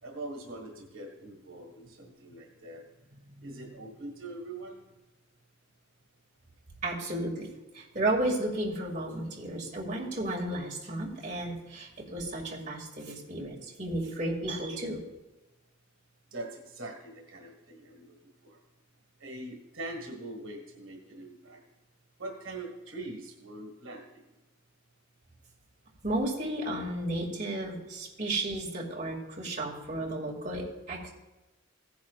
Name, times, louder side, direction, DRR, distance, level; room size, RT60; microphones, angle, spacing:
voice 1, 0.0-2.8 3.1-4.8 16.3-18.1 18.4-18.6 19.2-21.6 22.2-24.3, right 2 dB, 80° right, 2 dB, 1.7 m, -43 dB
voice 2, 6.8-15.0 26.0-31.1, right 1 dB, 40° right, -3 dB, 2.4 m, -33 dB
16.0 x 10.5 x 2.4 m, 1.0 s
head